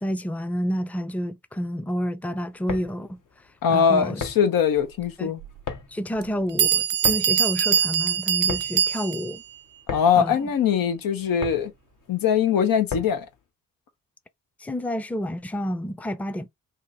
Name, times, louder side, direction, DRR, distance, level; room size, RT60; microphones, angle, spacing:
voice 1, 0.0-3.2 3.7-4.2 5.2-5.3 5.9-9.4 10.1-10.5 14.6-16.5, equal, 5° left, 0.5 m, -29 dB
sound 1, 2.5-13.4, left 5 dB, 65° left, 1.2 m, -38 dB
voice 2, 3.6-5.4 9.9-11.7 12.1-13.3, left 7 dB, 85° left, 0.9 m, -21 dB
Bell, 5.4-5.5 6.2-6.3 6.6-9.4, right 9 dB, 75° right, 0.5 m, -23 dB
2.8 x 2.6 x 4.0 m
cardioid pair, 55°, 33 cm